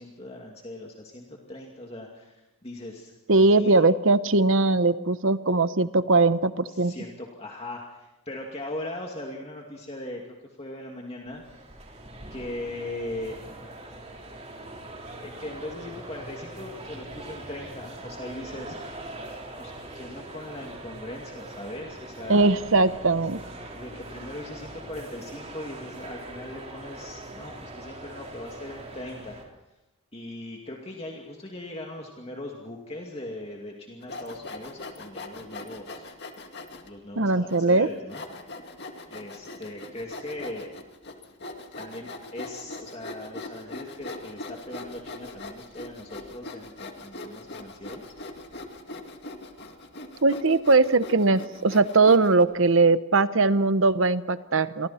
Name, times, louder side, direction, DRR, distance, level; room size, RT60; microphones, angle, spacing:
voice 1, 0.0-3.8 6.7-10.2 10.6-11.4 12.3-13.4 15.2-18.8 19.6-22.5 23.7-29.4 30.1-36.0 36.8-38.2 39.1-40.7 41.7-48.0, left 1 dB, 30° left, -1 dB, 2.5 m, -39 dB
voice 2, 3.3-6.9 22.3-23.4 37.2-37.9 50.2-54.9, right 3 dB, 60° right, 13 dB, 0.9 m, -20 dB
sound 1, 11.2-29.4, right 2 dB, 30° right, 3.7 m, -42 dB
Sawing, 34.0-36.9 37.5-37.6 38.1-52.4, left 2 dB, 50° left, 2.1 m, -41 dB
29.5 x 24.0 x 4.4 m, 0.95 s
head